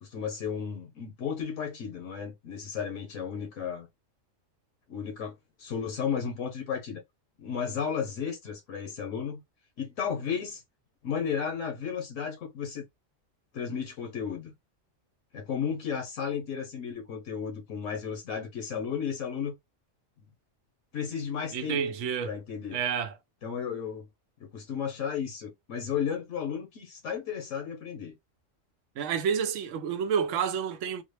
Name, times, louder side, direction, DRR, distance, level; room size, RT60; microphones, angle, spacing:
voice 1, 0.0-3.9 4.9-5.3 5.6-7.0 7.4-9.4 9.8-10.6 11.0-12.8 13.5-14.5 15.3-19.5 20.9-21.8 22.2-22.8 23.4-24.1 24.5-28.1, left 7 dB, 80° left, 1.2 m, -33 dB
voice 2, 21.5-22.4 22.7-23.2 29.0-31.0, right 7 dB, 75° right, 0.9 m, -29 dB
3.6 x 2.0 x 3.2 m
omnidirectional pair, 1.3 m